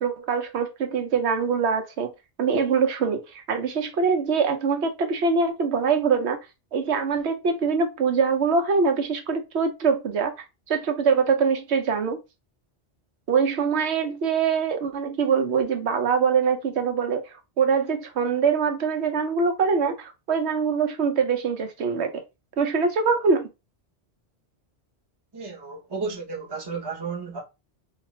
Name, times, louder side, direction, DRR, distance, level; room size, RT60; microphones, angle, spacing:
voice 1, 0.0-2.1 2.4-6.4 6.7-12.2 13.3-22.2 22.6-23.5, right 5 dB, 80° right, 1.0 m, -23 dB
voice 2, 25.3-27.4, right 4 dB, 25° right, 0.8 m, -33 dB
4.3 x 2.4 x 3.1 m
omnidirectional pair, 1.1 m